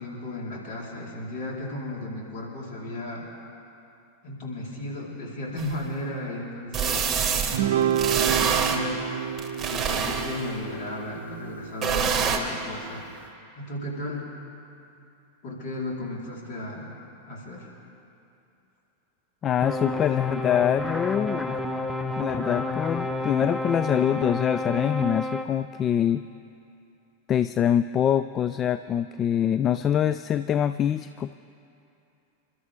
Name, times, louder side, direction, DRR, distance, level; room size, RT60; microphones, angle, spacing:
voice 1, 0.0-3.2 4.2-7.1 7.7-8.1 8.4-9.1 9.7-13.1 13.5-14.3 15.4-16.9 17.3-17.7, left 1 dB, 50° left, -4 dB, 4.1 m, -35 dB
sound 1, 5.6-5.7 6.7-7.6 8.0-8.8 9.4-10.5 11.8-12.4, right 7 dB, 20° right, 1.6 m, -25 dB
Guitar, 7.5-12.1, right 9 dB, 55° right, 0.7 m, -29 dB
voice 2, 19.4-21.6 22.2-26.2 27.3-31.3, left 9 dB, 25° left, 13 dB, 0.3 m, -24 dB
sound 2, 19.6-25.5, left 2 dB, 5° left, 0.8 m, -30 dB
28.5 x 12.5 x 3.6 m, 2.7 s
figure-of-eight pair, 90°, 0 cm